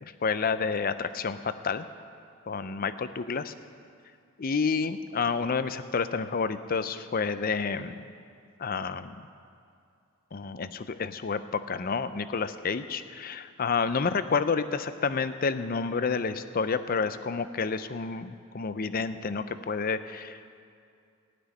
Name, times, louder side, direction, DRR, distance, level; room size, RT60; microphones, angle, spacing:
voice 1, 0.2-1.8 2.5-3.5 4.4-8.1 8.6-9.1 10.3-11.4 11.7-20.6, left 5 dB, 40° left, 12 dB, 0.5 m, -29 dB
16.5 x 6.2 x 9.7 m, 2.4 s
head